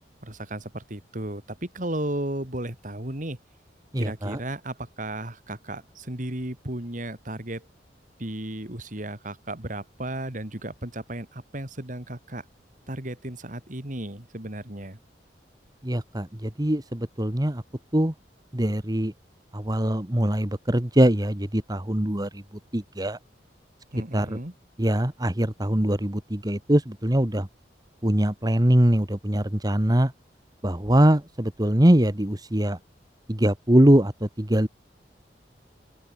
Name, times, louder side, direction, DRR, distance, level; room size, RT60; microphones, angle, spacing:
voice 1, 0.2-3.4 4.0-7.7 8.2-12.4 12.9-15.0 23.9-24.5, right 1 dB, 45° right, 3.3 m, -34 dB
voice 2, 3.9-4.4 15.8-17.6 17.9-18.1 18.5-19.1 19.5-22.4 22.7-23.2 24.1-24.4 24.8-27.5 28.0-30.1 30.6-32.8 33.3-34.7, right 1 dB, 20° right, 1.7 m, -22 dB
open air
head